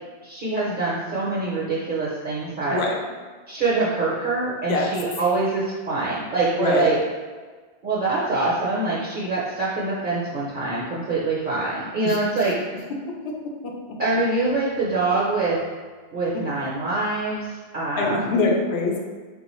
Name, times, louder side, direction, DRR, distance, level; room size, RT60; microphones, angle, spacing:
voice 1, 0.2-2.8 3.5-7.0 7.8-12.6 14.0-15.7 16.1-18.4, right 3 dB, 55° right, -6 dB, 0.7 m, -24 dB
voice 2, 6.6-6.9 12.0-12.2 13.2-13.3 13.6-13.7 18.0-19.0, left 3 dB, 80° left, 0 dB, 0.8 m, -23 dB
3.5 x 2.3 x 3.0 m, 1.4 s
omnidirectional pair, 1.1 m